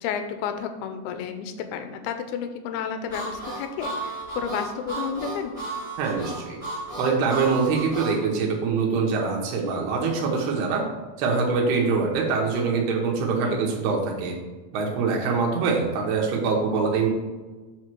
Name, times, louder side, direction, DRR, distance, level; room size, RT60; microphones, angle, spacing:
voice 1, 0.0-5.5 13.4-13.7, left 7 dB, 85° left, 7 dB, 2.5 m, -31 dB
Harmonica, 3.1-8.2, right 2 dB, 60° right, 0.3 m, -33 dB
voice 2, 6.0-6.6 7.0-10.8 11.2-14.4 14.7-17.1, right 4 dB, 85° right, -1 dB, 3.0 m, -24 dB
8.2 x 3.1 x 6.0 m, 1.3 s
omnidirectional pair, 4.4 m